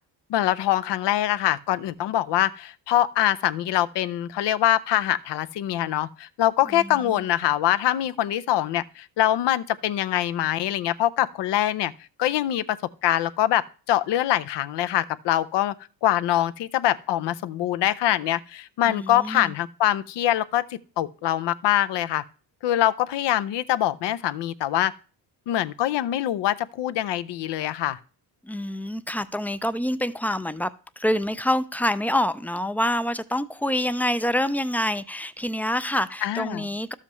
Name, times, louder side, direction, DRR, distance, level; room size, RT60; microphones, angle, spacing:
voice 1, 0.3-11.9 12.2-12.8 13.0-15.7 16.0-22.2 22.6-24.9 25.5-28.0 36.2-36.7, left 13 dB, 70° left, 0.6 m, -24 dB
voice 2, 6.7-7.3 18.8-19.5 28.4-36.9, left 1 dB, 5° left, 0.4 m, -26 dB
12.0 x 7.4 x 3.1 m
cardioid pair, 80°, 43 cm